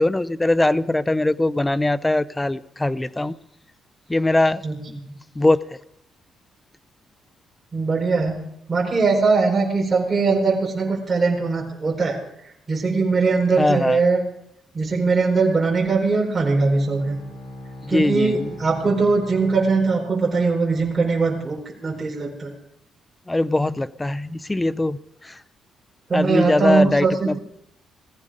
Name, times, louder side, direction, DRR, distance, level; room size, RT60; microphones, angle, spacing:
voice 1, 0.0-3.4 4.1-4.6 4.9-5.0 5.4-5.8 13.6-14.0 17.8-18.5 23.3-25.4 26.1-27.4, left 2 dB, 15° left, 0.6 m, -21 dB
voice 2, 7.7-8.4 8.7-12.2 12.7-14.2 14.7-17.1 17.9-22.5 26.1-27.4, right 4 dB, 25° right, 4.9 m, -21 dB
Bowed string instrument, 16.3-20.8, left 1 dB, 55° left, 6.2 m, -40 dB
18.5 x 15.0 x 5.1 m
cardioid pair, 90°, 0 cm